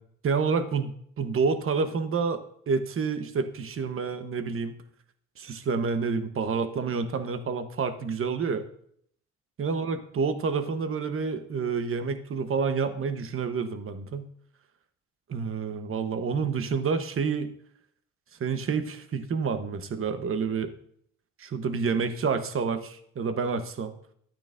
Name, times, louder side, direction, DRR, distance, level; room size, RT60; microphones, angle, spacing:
voice 1, 0.2-0.9 1.2-4.7 5.4-8.6 9.6-14.3 15.3-17.5 18.4-20.7 21.4-23.9, right 5 dB, 45° right, 9 dB, 1.0 m, -28 dB
13.0 x 8.9 x 2.6 m, 0.64 s
cardioid pair, 90°, 30 cm